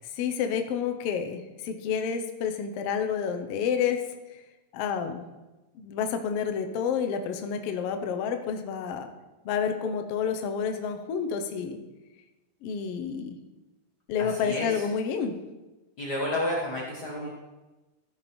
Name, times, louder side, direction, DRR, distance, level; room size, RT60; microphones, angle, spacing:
voice 1, 0.1-4.0 4.3-4.4 4.7-5.2 5.7-9.1 9.4-11.8 12.6-13.4 14.1-15.4, left 7 dB, 85° left, 6 dB, 1.3 m, -29 dB
voice 2, 14.2-14.9 16.0-17.3, left 1 dB, 50° left, -3 dB, 1.2 m, -31 dB
14.0 x 6.6 x 4.3 m, 1.1 s
omnidirectional pair, 3.8 m